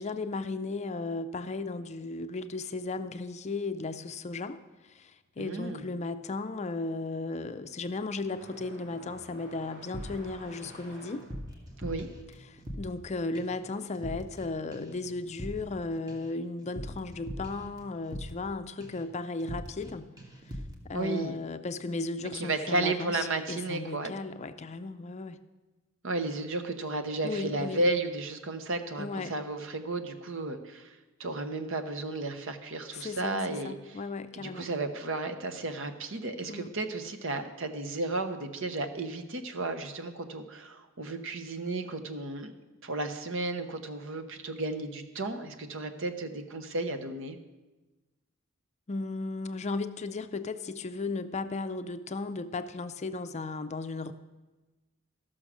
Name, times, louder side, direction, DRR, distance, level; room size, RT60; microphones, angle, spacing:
voice 1, 0.0-4.6 4.8-11.3 12.5-20.1 20.8-25.4 27.2-27.8 29.0-29.3 32.9-34.7 36.5-36.7 48.9-54.1, left 3 dB, 35° left, 10 dB, 0.5 m, -35 dB
voice 2, 5.4-5.8 11.8-12.1 20.9-21.3 22.2-24.1 26.0-34.0 34.3-47.4, right 2 dB, 65° right, 8 dB, 0.9 m, -33 dB
sound 1, 6.5-14.6 14.9-15.9 16.9-17.0 17.8-17.9 19.6-19.8, equal, 40° right, 4.3 m, -53 dB
sound 2, 9.9-10.8 11.1-13.1 13.3-13.6 13.9-14.5 14.7-18.5 18.8-19.1 19.4-19.9 20.2-20.8, equal, 20° right, 1.4 m, -42 dB
13.5 x 6.3 x 6.1 m, 1.2 s
head